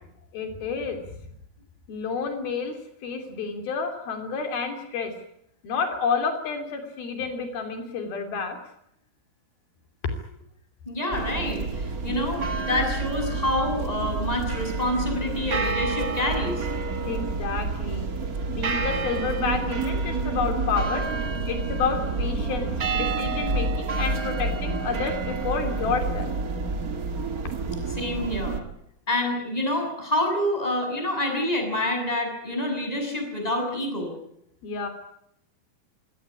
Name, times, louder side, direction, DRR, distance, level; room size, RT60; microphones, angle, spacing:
voice 1, 0.3-1.0 1.9-2.8 3.0-5.1 5.6-8.6 17.0-18.1 18.5-21.0 21.5-26.3 34.6-34.9, left 5 dB, 80° left, 5 dB, 4.8 m, -29 dB
voice 2, 10.9-16.7 27.9-28.6 29.1-34.1, left 1 dB, 10° left, 4 dB, 6.6 m, -27 dB
sound 1, 11.1-28.6, right 3 dB, 40° right, 1.4 m, -28 dB
25.0 x 17.5 x 8.5 m, 0.76 s
omnidirectional pair, 4.2 m